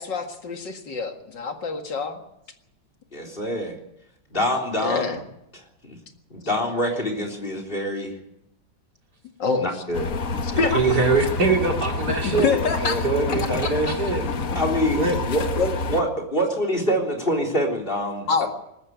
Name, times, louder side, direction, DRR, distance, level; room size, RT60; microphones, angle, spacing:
voice 1, 0.0-2.2 4.8-5.2 9.4-9.7 10.4-10.8 12.2-13.0 13.6-13.9 15.6-15.8 18.3-18.5, left 5 dB, 70° left, 5 dB, 2.6 m, -25 dB
voice 2, 3.1-3.8 4.3-5.1 5.8-6.0 6.3-8.1 9.6-10.1 13.2-13.5 14.5-18.5, equal, 25° left, 4 dB, 3.8 m, -26 dB
sound 1, 9.9-16.0, left 3 dB, 50° left, 1.7 m, -28 dB
voice 3, 10.7-14.3 15.0-15.2, right 3 dB, 60° right, 2 dB, 3.4 m, -23 dB
19.5 x 14.5 x 9.4 m, 0.83 s
omnidirectional pair, 2.0 m